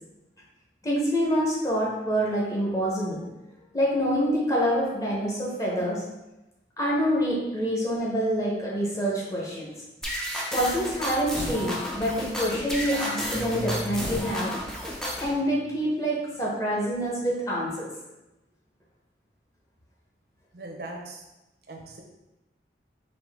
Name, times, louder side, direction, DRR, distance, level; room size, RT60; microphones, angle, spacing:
voice 1, 0.8-3.2 3.7-6.0 6.8-9.7 10.5-14.5 15.2-17.9, equal, 20° left, -5 dB, 0.9 m, -26 dB
sound 1, 10.0-15.3, equal, 5° left, 0.4 m, -32 dB
voice 2, 20.5-21.2 21.7-22.0, right 2 dB, 60° right, 0 dB, 0.7 m, -39 dB
4.1 x 2.6 x 3.5 m, 0.99 s
head